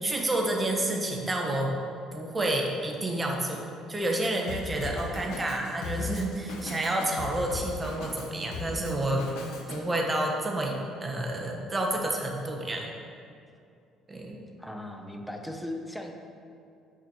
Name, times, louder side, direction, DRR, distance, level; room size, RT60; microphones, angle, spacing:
voice 1, 0.0-1.8 2.1-3.6 3.9-9.2 9.7-10.7 11.0-12.9 14.1-14.4, right 1 dB, 15° right, 0 dB, 1.3 m, -29 dB
Drum kit, 4.5-9.8, left 4 dB, 90° left, 1.2 m, -38 dB
voice 2, 14.6-16.1, left 1 dB, 5° left, 3 dB, 0.9 m, -37 dB
8.8 x 5.8 x 6.3 m, 2.5 s
cardioid pair, 130°, 0 cm